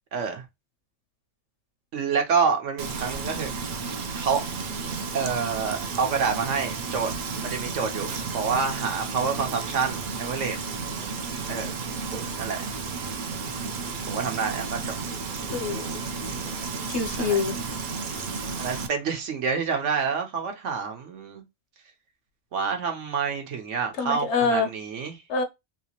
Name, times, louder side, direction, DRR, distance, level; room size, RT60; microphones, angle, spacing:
voice 1, 0.1-0.4 1.9-3.7 4.1-4.4 5.1-7.1 7.4-10.6 11.5-11.7 12.4-12.7 14.1-15.0 17.2-17.4 18.6-21.4 22.5-25.2, right 5 dB, 70° right, 1.2 m, -28 dB
Frying (food), 2.8-18.9, right 4 dB, 55° right, 0.6 m, -32 dB
voice 2, 15.5-16.0 16.9-17.6 24.0-24.7 25.3-25.4, left 4 dB, 65° left, 0.9 m, -25 dB
3.3 x 2.9 x 2.8 m
omnidirectional pair, 1.4 m